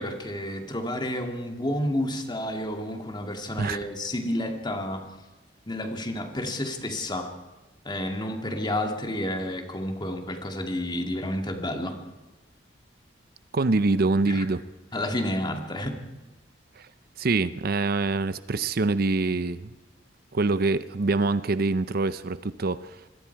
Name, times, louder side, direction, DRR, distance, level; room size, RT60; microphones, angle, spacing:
voice 1, 0.0-5.1 5.7-7.3 7.8-12.0 14.3-14.4 14.9-16.0, left 1 dB, 25° left, 4 dB, 2.3 m, -30 dB
voice 2, 13.5-14.6 16.8-16.9 17.2-19.7 20.3-23.0, right 3 dB, 55° right, 14 dB, 0.6 m, -25 dB
25.5 x 21.5 x 4.7 m, 1.2 s
head